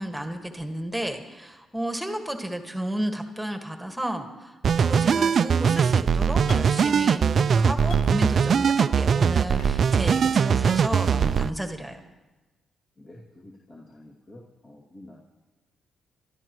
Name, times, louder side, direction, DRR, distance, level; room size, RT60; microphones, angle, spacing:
voice 1, 0.0-12.0, right 1 dB, 5° right, 5 dB, 1.7 m, -32 dB
sound 1, 4.6-11.5, right 6 dB, 55° right, 0.4 m, -21 dB
sound 2, 6.5-6.9 7.4-8.2 9.6-10.1 11.4-11.5, left 2 dB, 85° left, 1.3 m, -40 dB
voice 2, 13.0-15.2, left 1 dB, 45° left, -5 dB, 2.6 m, -48 dB
30.0 x 12.5 x 3.1 m, 1.2 s
supercardioid pair, 65°, 0 cm